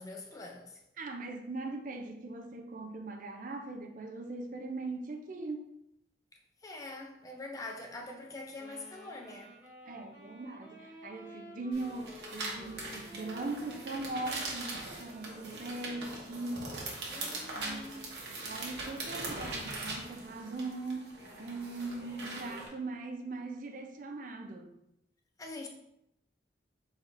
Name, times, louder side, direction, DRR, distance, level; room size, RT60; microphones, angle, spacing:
voice 1, 0.0-0.8 6.6-9.6 17.1-18.2 25.4-25.7, left 2 dB, 20° left, 0.4 m, -44 dB
voice 2, 1.0-5.7 9.8-16.8 17.6-17.8 18.5-21.1 21.4-24.8, right 2 dB, 45° right, 0.4 m, -40 dB
Wind instrument woodwind instrument, 8.6-17.1, left 1 dB, 15° right, 1.1 m, -53 dB
sound 1, 11.7-22.7, right 2 dB, 65° right, 1.1 m, -41 dB
4.5 x 4.1 x 2.5 m
head